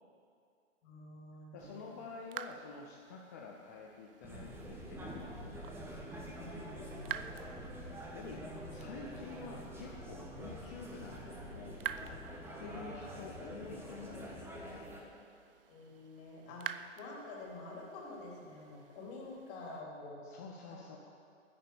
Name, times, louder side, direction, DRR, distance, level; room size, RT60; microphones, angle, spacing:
voice 1, 0.8-2.0 6.4-7.2 15.7-16.7 17.0-20.2 20.7-20.9, left 2 dB, 30° left, -3 dB, 3.4 m, -48 dB
voice 2, 1.5-5.6 7.9-12.2 12.6-14.9 20.2-21.0, left 4 dB, 15° left, -1 dB, 0.4 m, -49 dB
sound 1, 1.6-19.8, right 9 dB, 45° right, 0.5 m, -50 dB
sound 2, 4.2-15.0, equal, 5° right, 1.4 m, -46 dB
10.5 x 10.0 x 6.9 m, 2.4 s
hypercardioid pair, 135°, 38 cm